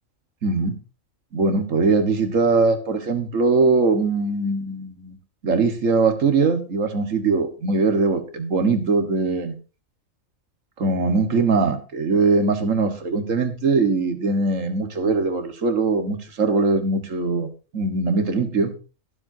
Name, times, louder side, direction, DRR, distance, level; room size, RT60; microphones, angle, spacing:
voice 1, 0.4-0.8 1.3-5.2 5.4-9.6 10.8-18.7, right 4 dB, 80° right, 7 dB, 1.9 m, -21 dB
22.5 x 7.6 x 2.7 m, 0.32 s
omnidirectional pair, 1.3 m